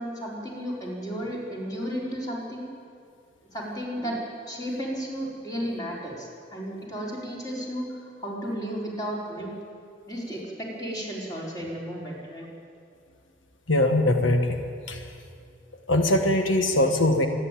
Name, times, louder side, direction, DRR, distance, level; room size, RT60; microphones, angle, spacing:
voice 1, 0.0-2.7 3.5-9.5 10.1-12.5, equal, 20° left, -3 dB, 4.4 m, -33 dB
voice 2, 13.7-14.6 14.9-15.0 15.9-17.3, left 1 dB, 85° left, 5 dB, 1.4 m, -21 dB
25.5 x 11.0 x 9.1 m, 2.3 s
head